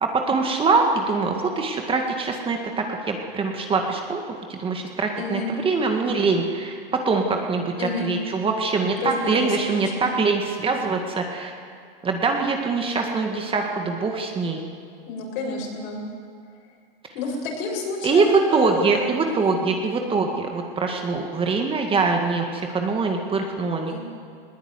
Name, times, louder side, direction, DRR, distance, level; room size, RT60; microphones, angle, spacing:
voice 1, 0.0-4.2 4.5-11.5 12.0-14.6 18.0-24.0, right 4 dB, 20° right, 2 dB, 1.9 m, -23 dB
voice 2, 5.2-5.5 7.8-8.1 9.0-10.2 15.1-16.0 17.1-19.6 23.9-24.0, left 3 dB, 60° left, 0 dB, 7.4 m, -30 dB
20.0 x 17.5 x 9.7 m, 2.2 s
hypercardioid pair, 130°, 30 cm